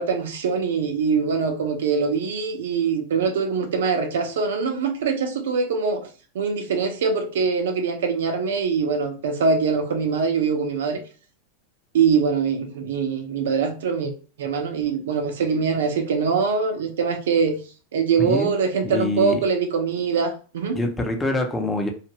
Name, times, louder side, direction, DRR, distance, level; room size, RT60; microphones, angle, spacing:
voice 1, 0.0-6.1 6.3-11.0 11.9-14.1 14.4-17.6 17.9-20.8, right 5 dB, 85° right, 0.7 m, -23 dB
voice 2, 18.2-18.5 18.8-19.5 20.7-21.9, left 2 dB, 10° left, 0.7 m, -25 dB
2.6 x 2.5 x 2.9 m
hypercardioid pair, 115°, 0 cm